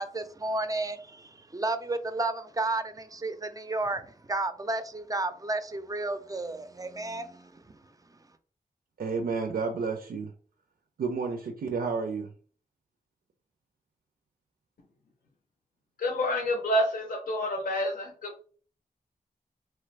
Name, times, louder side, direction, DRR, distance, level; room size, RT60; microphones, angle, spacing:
voice 1, 0.0-7.8, right 2 dB, 25° right, 0.4 m, -32 dB
voice 2, 9.0-10.3 11.0-12.3, right 4 dB, 90° right, 0.4 m, -31 dB
voice 3, 16.0-18.4, equal, 70° left, 0.6 m, -28 dB
2.9 x 2.4 x 3.2 m
cardioid pair, 60°, 15 cm